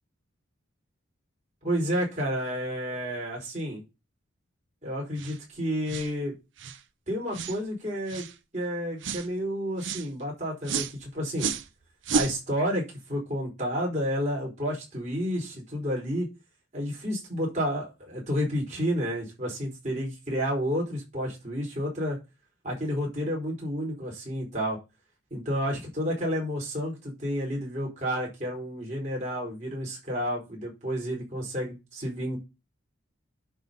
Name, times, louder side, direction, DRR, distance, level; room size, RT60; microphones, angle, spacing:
voice 1, 1.6-3.8 4.8-6.3 7.1-8.3 8.5-11.5 12.1-16.3 16.7-22.2 22.6-24.8 25.3-32.4, equal, 35° right, -2 dB, 5.0 m, -30 dB
sound 1, 5.2-5.4 5.9-6.1 6.6-6.8 7.3-7.6 8.1-8.3 9.0-9.3 9.8-10.1 10.6-10.9 11.4-11.7 12.0-12.3, right 6 dB, 65° right, 0.8 m, -31 dB
11.0 x 4.3 x 5.4 m, 0.26 s
head